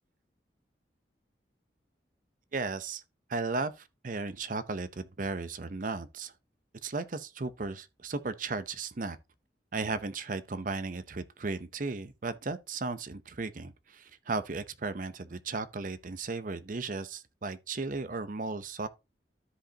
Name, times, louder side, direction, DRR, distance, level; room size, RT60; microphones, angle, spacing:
voice 1, 2.5-3.0 3.3-6.3 6.8-9.2 9.7-18.9, right 3 dB, 50° right, 0.7 m, -35 dB
13.0 x 5.1 x 2.8 m
head